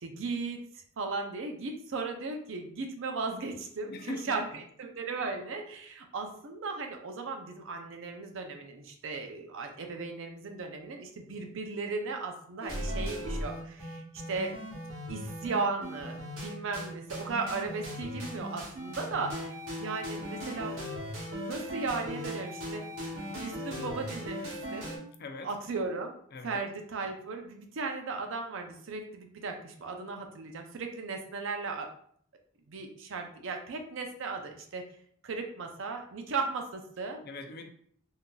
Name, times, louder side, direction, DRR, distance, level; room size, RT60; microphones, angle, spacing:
voice 1, 0.0-0.6 1.0-14.6 15.1-19.5 19.8-20.8 21.3-22.9 23.2-24.9 25.4-26.1 26.4-31.9 32.7-34.8 35.2-37.2, right 4 dB, 65° right, 4 dB, 0.5 m, -36 dB
voice 2, 3.9-4.4 25.2-25.5 26.3-26.6 37.2-37.7, left 2 dB, 50° left, 5 dB, 0.4 m, -40 dB
sound 1, 12.6-25.0, equal, 85° right, 1.1 m, -38 dB
3.8 x 2.6 x 2.3 m, 0.62 s
head